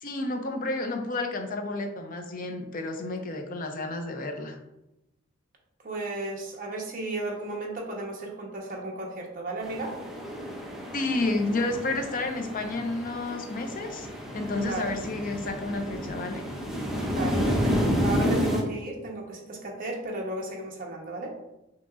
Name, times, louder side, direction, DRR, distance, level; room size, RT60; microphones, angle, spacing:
voice 1, 0.0-4.6 10.9-14.1 14.3-16.4, left 2 dB, 45° left, 5 dB, 0.5 m, -31 dB
voice 2, 5.8-9.9 14.5-14.9 17.1-21.4, right 2 dB, 45° right, -1 dB, 0.9 m, -34 dB
sound 1, 9.6-18.6, equal, ahead, 0.5 m, -30 dB
6.0 x 2.9 x 2.4 m, 0.92 s
head